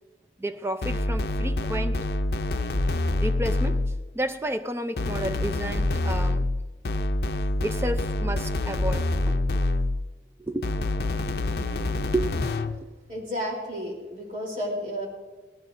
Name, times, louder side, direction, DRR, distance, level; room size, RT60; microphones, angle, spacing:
voice 1, 0.4-2.1 3.2-3.8 4.1-6.5 7.6-9.5 10.4-10.7 11.9-12.9, right 1 dB, 15° right, 0.5 m, -31 dB
sound 1, 0.8-4.1 5.0-10.1 10.6-12.8, left 2 dB, 60° left, 0.5 m, -26 dB
voice 2, 13.1-15.1, equal, 45° right, 3.6 m, -32 dB
18.5 x 15.5 x 2.6 m
head